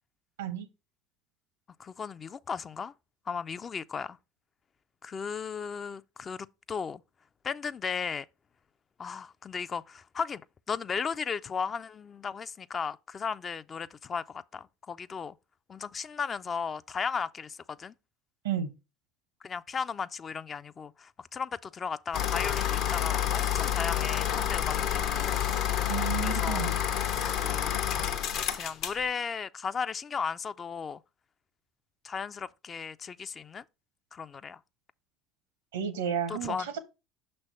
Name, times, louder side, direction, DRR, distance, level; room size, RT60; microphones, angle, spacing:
voice 1, 1.8-2.9 3.3-4.2 5.0-7.0 7.4-8.3 9.0-10.4 10.7-15.3 15.7-17.9 19.4-25.4 26.2-26.7 27.4-27.7 28.5-31.0 32.0-33.6 34.1-34.6 36.3-36.7, left 6 dB, 35° left, 0.3 m, -35 dB
sound 1, 22.1-29.0, left 10 dB, 60° left, 0.7 m, -29 dB
voice 2, 25.9-26.7 35.7-36.8, right 8 dB, 80° right, 0.8 m, -32 dB
6.0 x 3.3 x 5.5 m
hypercardioid pair, 70°, 0 cm